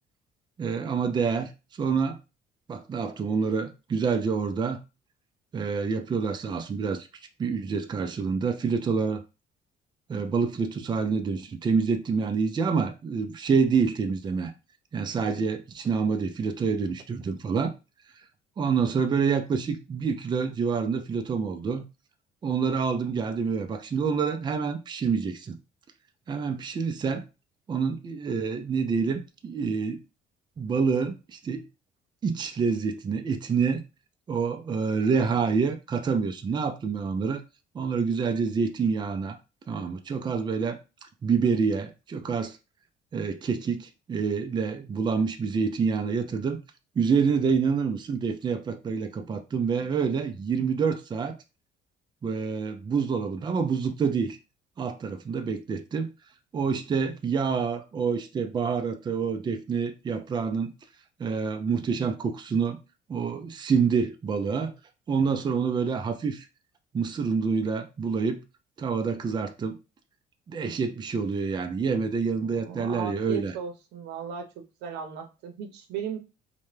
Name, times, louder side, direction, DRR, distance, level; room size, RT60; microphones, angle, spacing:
voice 1, 0.6-1.5 1.8-2.2 2.7-4.8 5.5-7.1 7.4-9.2 10.1-14.5 14.9-17.7 18.6-21.8 22.4-25.6 26.3-27.3 27.7-30.0 30.6-31.7 32.2-33.8 34.3-37.4 37.7-39.4 39.7-40.8 41.2-42.6 43.1-46.6 47.0-51.4 52.2-54.4 54.8-56.1 56.5-60.7 61.2-62.8 63.1-64.7 65.1-66.5 66.9-68.4 68.8-69.8 70.5-73.5, right 5 dB, 25° right, 0.4 m, -27 dB
voice 2, 72.4-76.2, right 7 dB, 85° right, 0.7 m, -36 dB
2.8 x 2.2 x 3.2 m
cardioid pair, 110°, 17 cm